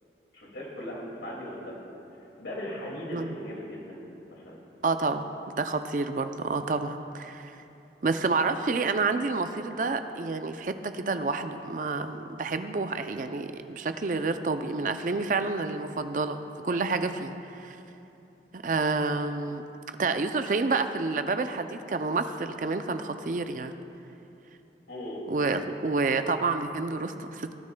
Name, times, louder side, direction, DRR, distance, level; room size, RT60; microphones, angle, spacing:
voice 1, 0.3-1.8 2.4-4.0 4.3-4.6 24.9-25.2, left 1 dB, 80° left, -2 dB, 2.3 m, -38 dB
voice 2, 4.8-5.3 5.5-7.6 8.0-17.8 18.5-19.6 20.0-23.7 25.3-27.5, right 3 dB, 45° right, 8 dB, 0.4 m, -29 dB
19.0 x 9.5 x 2.2 m, 2.9 s
head